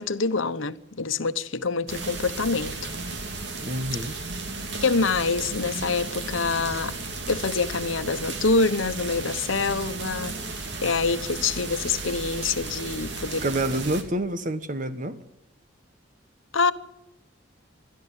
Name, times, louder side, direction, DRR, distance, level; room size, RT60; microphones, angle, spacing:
voice 1, 0.0-2.9 4.8-7.0 7.3-13.4 16.5-16.7, left 4 dB, 85° left, 1.0 m, -26 dB
sound 1, 1.9-14.0, right 3 dB, 60° right, 2.6 m, -34 dB
voice 2, 3.6-4.1 13.4-15.2, right 1 dB, 40° right, 1.3 m, -28 dB
22.0 x 13.5 x 9.8 m
head